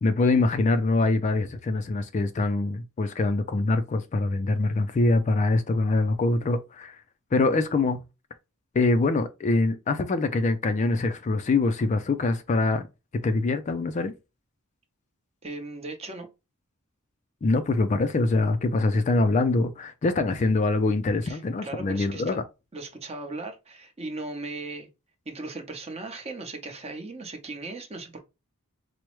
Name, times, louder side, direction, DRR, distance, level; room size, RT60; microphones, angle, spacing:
voice 1, 0.0-7.0 7.3-8.0 8.7-12.9 13.2-14.1 17.4-22.4, left 3 dB, 35° left, 0.3 m, -24 dB
voice 2, 15.4-16.3 21.2-22.4 22.7-24.9 25.3-28.2, right 3 dB, 30° right, 0.8 m, -37 dB
4.5 x 2.0 x 3.0 m
head